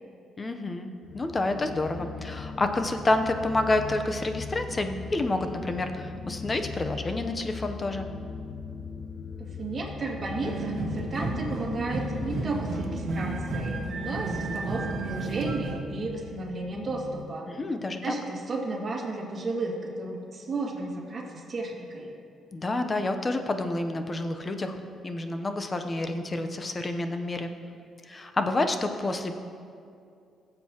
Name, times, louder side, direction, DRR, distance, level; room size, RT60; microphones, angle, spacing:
voice 1, 0.4-8.1 17.5-18.0 22.5-24.8 25.0-27.5 28.0-29.3, left 2 dB, 30° left, 6 dB, 0.8 m, -29 dB
sound 1, 1.0-17.3, left 5 dB, 50° left, 0.5 m, -39 dB
voice 2, 9.4-17.5 18.0-22.1, right 2 dB, 40° right, -2 dB, 2.2 m, -33 dB
sound 2, 10.4-15.8, right 4 dB, 60° right, 1.0 m, -33 dB
16.5 x 7.6 x 3.0 m, 2.4 s
cardioid pair, 90°, 0 cm